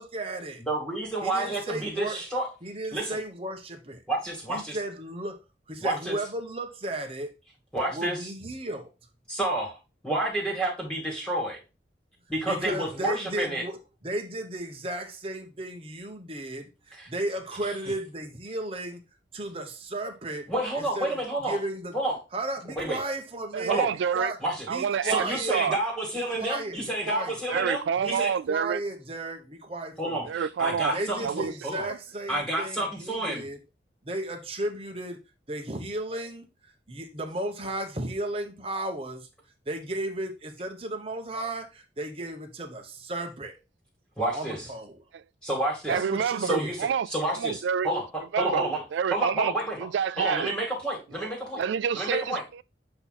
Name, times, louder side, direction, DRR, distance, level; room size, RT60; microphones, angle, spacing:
voice 1, 0.0-0.6 1.2-2.2 2.6-4.0 4.5-5.4 5.7-7.3 7.9-8.9 12.4-19.0 19.3-20.5 20.8-21.9 22.3-23.9 24.1-24.4 24.7-25.6 26.1-27.6 28.0-30.3 30.9-33.6 34.0-35.2 35.5-36.5 36.9-39.3 39.7-43.6 44.3-45.0 45.9-46.8, right 1 dB, 30° right, 1.0 m, -34 dB
voice 2, 0.6-2.5 2.9-3.2 4.1-4.8 5.8-6.1 7.7-8.3 9.3-9.8 10.0-11.6 12.3-13.6 16.9-17.1 20.5-21.6 21.9-22.2 22.7-23.0 23.7-23.9 24.4-24.7 25.0-28.3 30.0-31.9 32.3-33.4 44.2-44.7 45.4-46.0 46.4-46.7 47.1-48.8 49.1-49.8 50.2-51.6 51.9-52.4, right 1 dB, 5° left, 2.4 m, -29 dB
voice 3, 23.5-24.3 24.7-25.8 27.5-28.8 30.3-31.0 31.2-31.5 31.8-32.0 45.9-47.1 47.3-47.9 48.3-49.5 49.8-50.5 51.5-52.6, right 7 dB, 80° right, 0.3 m, -28 dB
7.8 x 3.0 x 4.2 m
head